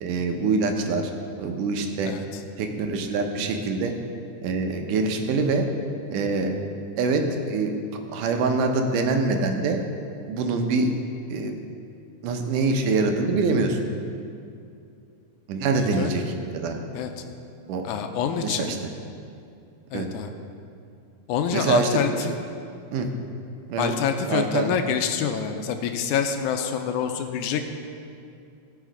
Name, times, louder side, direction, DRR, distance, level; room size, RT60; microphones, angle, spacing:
voice 1, 0.0-1.1 1.4-2.1 2.6-3.9 4.4-5.7 6.1-6.5 7.0-9.8 10.3-10.9 11.3-11.6 12.2-13.8 15.5-16.8 17.7-17.8 18.4-18.9 19.9-20.1 21.5-22.3 22.9-23.1 23.7-23.9 24.3-24.7, right 3 dB, 85° right, 4 dB, 2.4 m, -25 dB
voice 2, 15.8-16.1 16.9-17.1 17.8-18.7 19.9-20.3 21.3-22.1 23.8-27.6, left 8 dB, 80° left, 6 dB, 2.0 m, -26 dB
16.5 x 5.6 x 5.1 m, 2.5 s
omnidirectional pair, 3.6 m